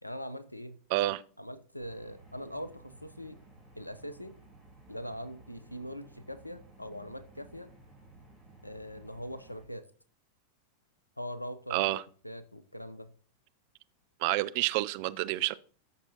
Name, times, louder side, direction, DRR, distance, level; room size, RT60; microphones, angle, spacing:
voice 1, 0.0-0.8 1.4-3.4 3.7-4.3 4.9-7.7 8.6-9.8 11.2-11.9 12.2-13.1, equal, 90° left, 0.6 m, -42 dB
voice 2, 0.9-1.2 11.7-12.0 14.2-15.6, right 17 dB, 45° right, 0.4 m, -29 dB
sound 1, 1.8-9.7, right 2 dB, ahead, 4.8 m, -56 dB
13.0 x 6.2 x 2.8 m
figure-of-eight pair, 90°, 0 cm